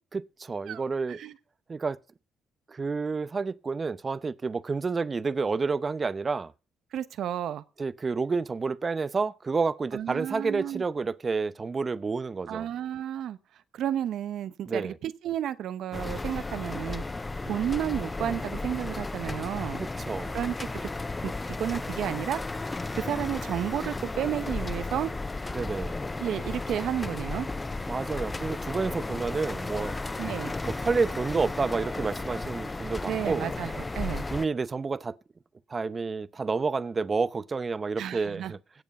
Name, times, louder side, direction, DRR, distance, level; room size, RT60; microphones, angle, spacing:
voice 1, 0.1-1.2 1.7-2.0 2.7-6.5 7.8-12.7 14.7-15.0 19.8-20.3 25.5-25.9 27.9-30.0 30.6-33.5 34.3-35.2 35.7-38.6, right 4 dB, 35° right, 0.7 m, -29 dB
voice 2, 6.9-7.6 9.9-10.8 12.5-13.4 13.7-17.0 17.4-19.8 20.3-20.9 21.2-21.3 21.6-22.4 23.0-25.1 26.2-27.5 30.2-30.5 33.0-34.3 38.0-38.5, right 10 dB, 75° right, 1.0 m, -32 dB
sound 1, 15.9-34.5, left 3 dB, 20° left, 0.6 m, -34 dB
17.0 x 8.2 x 5.4 m
cardioid pair, 90°, 0 cm